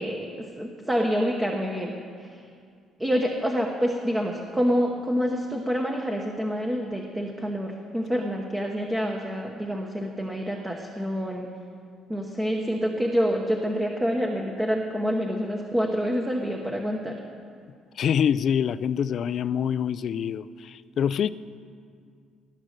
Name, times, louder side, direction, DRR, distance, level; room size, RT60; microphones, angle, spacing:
voice 1, 0.0-2.4 3.0-11.5 12.1-17.2, equal, 10° right, 1 dB, 1.0 m, -27 dB
voice 2, 18.0-21.3, left 8 dB, 55° left, 16 dB, 0.3 m, -25 dB
18.0 x 7.6 x 6.6 m, 2.2 s
cardioid pair, 120°, 0 cm